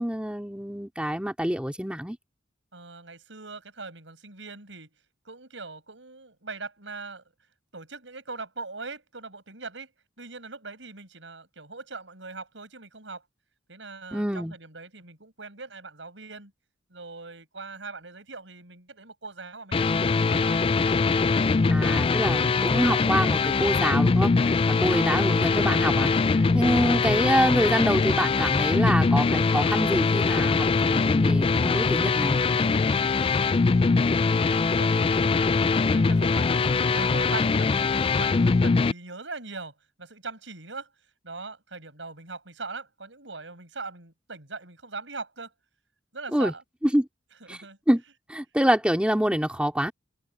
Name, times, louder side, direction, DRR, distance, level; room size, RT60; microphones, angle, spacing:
voice 1, 0.0-2.2 14.1-14.5 21.7-26.1 26.5-32.4 46.3-46.5 46.8-47.1 47.5-47.6 47.9-48.0 48.3-49.9, equal, 5° right, 2.9 m, -26 dB
voice 2, 2.7-4.9 5.2-7.2 7.7-9.9 10.2-13.2 13.7-16.5 16.9-20.7 21.5-21.8 33.2-35.5 35.9-40.9 41.2-45.5 46.1-46.6 47.4-47.8, right 3 dB, 80° right, 6.4 m, -41 dB
sound 1, 19.7-38.9, left 4 dB, 30° left, 0.3 m, -22 dB
head